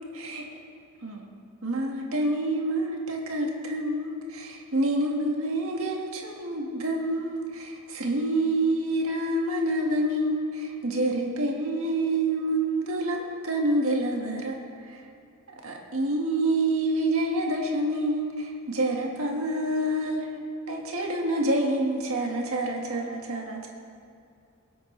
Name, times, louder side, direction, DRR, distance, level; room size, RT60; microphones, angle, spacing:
voice 1, 0.1-0.4 1.0-1.3 1.6-15.1 15.6-23.7, right 1 dB, 70° right, 0 dB, 1.6 m, -27 dB
23.5 x 8.1 x 3.2 m, 2.4 s
head